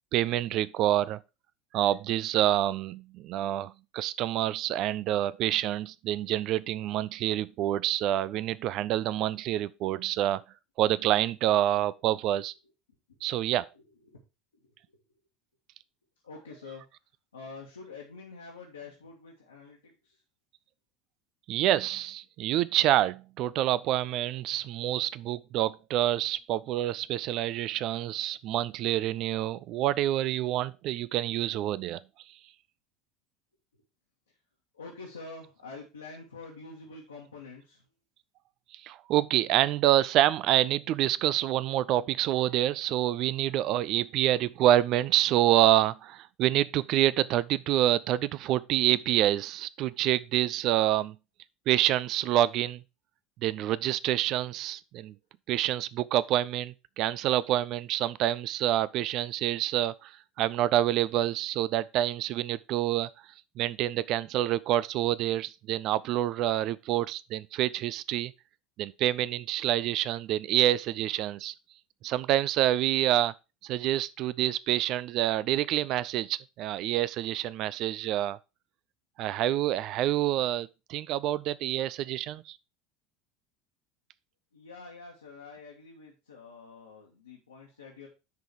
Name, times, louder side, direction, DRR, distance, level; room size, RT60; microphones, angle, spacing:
voice 1, 0.1-1.2 1.7-10.4 10.8-12.5 13.2-13.7 21.5-32.0 38.7-51.2 51.7-52.8 53.4-55.1 55.5-63.1 63.6-68.3 68.8-71.5 72.0-73.3 73.6-78.4 79.2-82.6, right 13 dB, 50° right, 0.4 m, -27 dB
voice 2, 13.7-14.2 14.6-15.0 16.2-16.8 17.3-20.2 34.3-34.4 34.7-37.8 84.5-88.1, left 4 dB, 80° left, 1.7 m, -47 dB
10.5 x 3.9 x 4.7 m
figure-of-eight pair, 70°, 0 cm